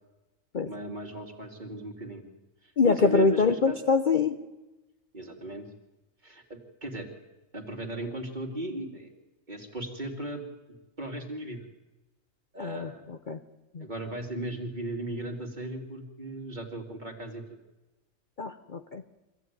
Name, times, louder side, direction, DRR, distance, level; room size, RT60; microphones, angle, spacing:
voice 1, 0.7-2.2 2.6-3.8 5.1-5.7 6.2-6.4 6.8-7.1 7.5-9.1 9.5-10.4 11.0-11.7 12.5-13.0 13.8-17.6, right 1 dB, 30° right, 4 dB, 2.8 m, -36 dB
voice 2, 2.8-4.4 12.6-13.4 13.7-13.9 18.4-19.0, left 4 dB, 40° left, 7 dB, 0.9 m, -25 dB
24.5 x 15.0 x 9.3 m, 1.1 s
omnidirectional pair, 1.5 m